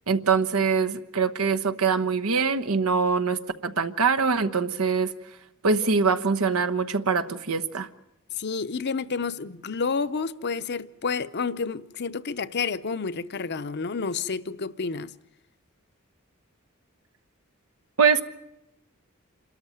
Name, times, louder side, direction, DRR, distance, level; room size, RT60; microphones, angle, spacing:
voice 1, 0.1-5.1 5.6-7.9 18.0-18.2, right 5 dB, 85° right, 1.1 m, -23 dB
voice 2, 8.4-15.1, left 5 dB, 55° left, 0.7 m, -30 dB
27.5 x 13.0 x 9.2 m
head